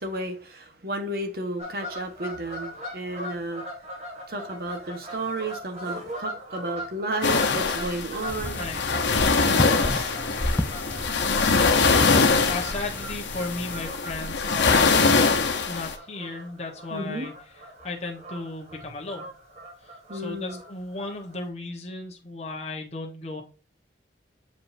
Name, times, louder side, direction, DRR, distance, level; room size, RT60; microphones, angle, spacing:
voice 1, 0.0-3.6 4.3-8.6 9.6-10.1 16.9-17.3 20.1-20.6, right 2 dB, 55° right, 1.3 m, -32 dB
Fowl / Bird vocalization bird call bird song, 1.6-21.5, equal, 35° right, 2.3 m, -41 dB
sound 1, 7.2-15.9, left 4 dB, 85° left, 1.0 m, -23 dB
sound 2, 8.3-13.8, left 1 dB, 10° left, 0.4 m, -33 dB
voice 2, 8.5-8.8 11.5-12.0 12.4-15.2 15.7-17.3 17.8-19.3 20.1-23.4, left 3 dB, 35° left, 1.2 m, -34 dB
7.2 x 5.0 x 2.7 m
head